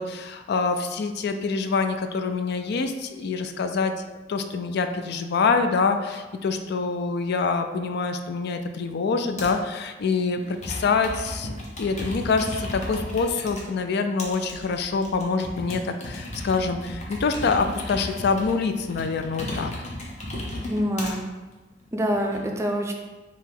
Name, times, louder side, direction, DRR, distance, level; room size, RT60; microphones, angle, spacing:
voice 1, 0.0-3.9 4.3-11.5 11.8-19.9, left 4 dB, 60° left, 7 dB, 0.4 m, -25 dB
Computer keyboard, 9.4-9.7 10.4-13.6 14.2-21.1 21.8-22.4, left 1 dB, 40° left, 0.9 m, -35 dB
voice 2, 20.7-21.2 21.9-22.9, equal, 15° right, 3 dB, 0.4 m, -25 dB
4.5 x 2.9 x 3.8 m, 1.2 s
head